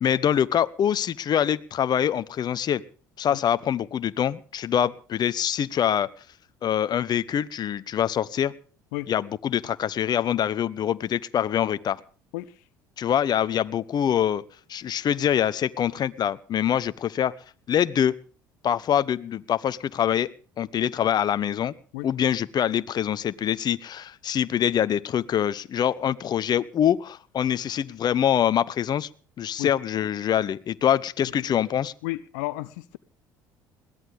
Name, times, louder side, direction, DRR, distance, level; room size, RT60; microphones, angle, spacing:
voice 1, 0.0-2.8 3.2-6.1 6.6-8.5 9.1-12.0 13.0-14.4 14.7-17.3 17.7-18.1 18.6-20.3 20.6-21.7 22.0-29.1 29.4-31.9, left 9 dB, 45° left, 0.9 m, -24 dB
voice 2, 32.0-33.0, left 19 dB, 75° left, 0.8 m, -32 dB
21.5 x 17.0 x 3.5 m
hypercardioid pair, 65°, 10 cm